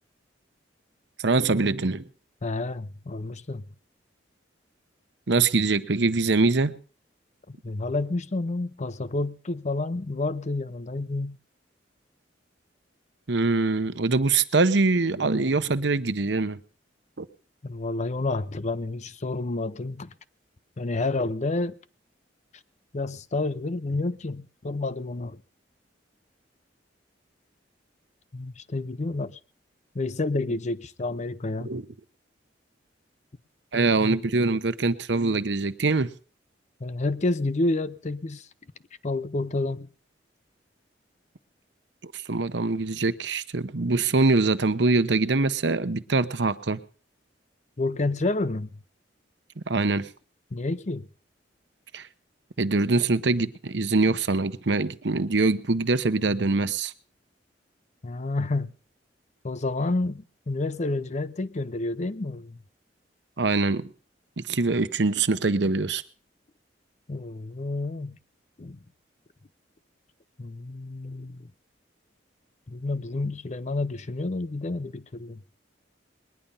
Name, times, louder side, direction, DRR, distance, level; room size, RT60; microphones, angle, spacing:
voice 1, 1.2-2.0 5.3-6.7 13.3-16.6 17.2-17.3 31.6-31.8 33.7-36.1 42.0-46.8 49.6-50.1 51.9-52.1 52.6-56.9 63.4-63.9 64.4-66.0, right 3 dB, 65° right, 0.9 m, -23 dB
voice 2, 2.4-3.6 7.5-11.4 17.6-20.1 20.8-21.8 22.9-25.4 28.3-29.4 29.9-31.8 36.8-38.5 39.0-39.9 47.8-48.8 50.5-51.1 58.0-58.7 59.4-62.6 65.6-65.8 67.1-68.2 68.6-68.8 70.4-71.5 72.7-75.4, left 2 dB, 40° left, 0.6 m, -29 dB
20.5 x 10.5 x 5.5 m
head